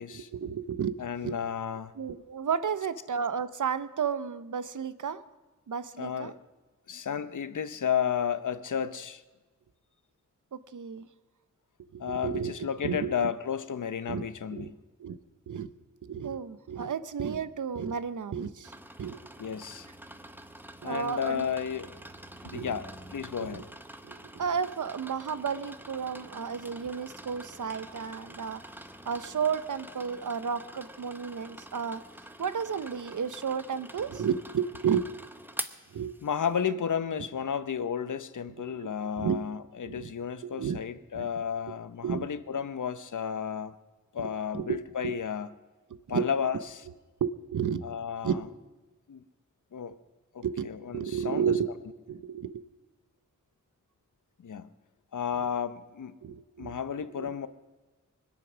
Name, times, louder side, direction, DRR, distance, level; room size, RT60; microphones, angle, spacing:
voice 1, 0.0-1.4 2.0-5.2 5.7-6.3 10.5-11.1 11.9-12.6 12.8-13.1 14.1-14.2 14.5-14.7 15.0-15.2 15.5-15.7 16.0-18.7 19.0-19.2 20.8-21.5 22.4-22.8 23.4-23.6 24.0-28.6 29.0-32.0 32.4-35.1 35.9-36.1 38.7-38.9 39.2-39.4 39.9-40.1 40.4-40.8 41.1-41.3 42.0-42.3 44.2-44.3 44.5-45.2 46.1-46.3 47.2-47.8 48.2-48.4 50.4-51.7 52.1-52.6 56.2-56.8 57.2-57.3, right 7 dB, 75° right, 14 dB, 0.8 m, -32 dB
voice 2, 1.0-1.9 6.0-6.4 6.9-9.2 12.0-14.7 19.4-19.9 20.8-21.9 22.4-23.6 36.2-43.8 44.1-45.5 46.1-46.8 47.8-48.4 49.1-49.2 49.7-50.0 50.3-51.5 54.4-54.7 55.1-56.1 56.6-57.5, left 7 dB, 75° left, 13 dB, 0.8 m, -32 dB
sound 1, 18.6-36.6, right 1 dB, 5° right, 0.9 m, -46 dB
24.0 x 8.5 x 6.2 m, 1.2 s
wide cardioid pair, 105°, 31 cm